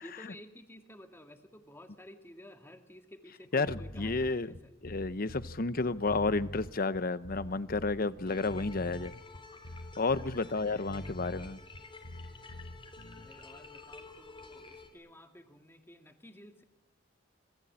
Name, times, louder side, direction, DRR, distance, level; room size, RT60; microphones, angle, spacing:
voice 1, 0.0-4.7 10.2-11.2 13.1-16.6, left 1 dB, 15° left, 2.2 m, -53 dB
voice 2, 3.5-9.2 10.0-11.6, left 3 dB, 50° left, 0.9 m, -31 dB
sound 1, 3.7-13.3, left 1 dB, 80° left, 2.6 m, -45 dB
sound 2, 8.2-14.9, left 3 dB, 30° left, 3.5 m, -51 dB
27.0 x 21.5 x 8.8 m
head